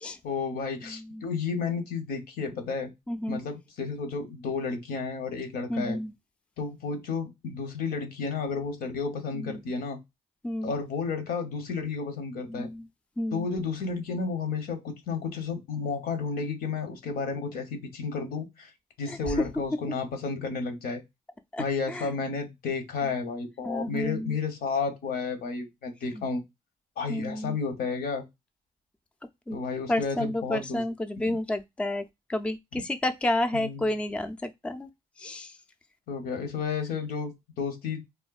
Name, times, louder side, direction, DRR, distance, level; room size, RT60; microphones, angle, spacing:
voice 1, 0.2-2.9 3.3-6.0 6.6-10.0 10.6-12.7 13.3-18.7 19.0-21.0 21.6-26.4 27.0-28.3 29.5-30.8 31.2-31.4 33.5-33.8 36.1-38.0, left 5 dB, 80° left, 0.8 m, -32 dB
voice 2, 0.9-1.2 3.1-3.4 5.7-6.1 9.4-9.6 10.4-10.7 12.5-12.8 13.2-13.5 19.1-19.2 21.5-22.1 23.6-24.3 26.1-26.2 27.1-27.6 29.5-29.6 29.9-32.0 32.3-34.9 35.2-35.5, left 1 dB, 5° left, 0.3 m, -31 dB
3.4 x 2.2 x 2.3 m
cardioid pair, 80°, 16 cm